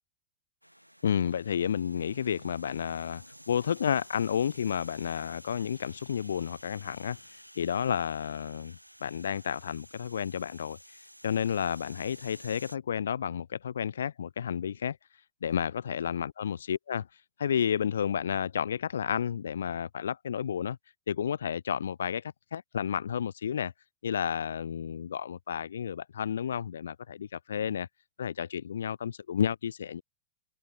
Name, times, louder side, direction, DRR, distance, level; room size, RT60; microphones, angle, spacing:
sound 1, 0.6-12.8, equal, 90° right, 2.0 m, -52 dB
voice 1, 1.0-11.0 11.2-15.0 15.4-17.1 17.4-20.8 21.1-23.7 24.0-27.9 28.2-30.0, left 8 dB, 65° left, 0.6 m, -31 dB
open air
figure-of-eight pair, 90°, 0 cm